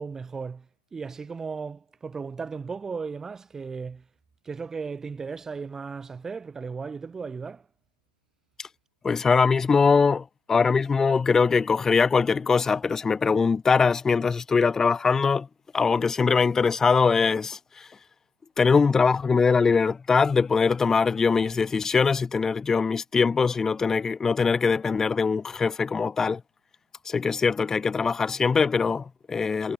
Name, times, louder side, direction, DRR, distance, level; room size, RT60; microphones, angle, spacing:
voice 1, 0.0-4.1 4.4-7.7, right 5 dB, 10° right, 1.3 m, -36 dB
voice 2, 9.0-15.5 15.7-17.9 18.6-26.4 27.1-29.7, left 5 dB, 10° left, 0.7 m, -22 dB
hypercardioid pair, 145°, 4 cm